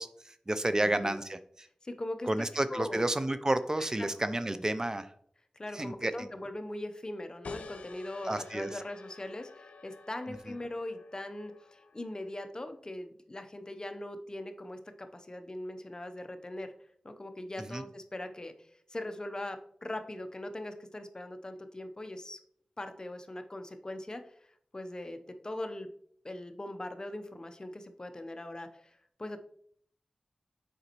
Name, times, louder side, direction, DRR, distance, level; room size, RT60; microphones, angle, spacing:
voice 1, 0.0-1.7 2.3-5.1 5.7-6.3 8.2-8.8 17.7-17.8, right 1 dB, 30° right, 12 dB, 0.4 m, -31 dB
voice 2, 0.8-1.1 1.8-2.3 2.7-3.1 3.8-4.1 4.5-4.6 5.5-16.7 17.0-22.4 22.8-24.5 24.7-25.9 26.2-29.4, left 1 dB, 35° left, 8 dB, 0.7 m, -41 dB
sound 1, 7.4-12.6, left 4 dB, 85° left, 0.5 m, -49 dB
6.6 x 5.1 x 3.0 m, 0.63 s
cardioid pair, 50°, 2 cm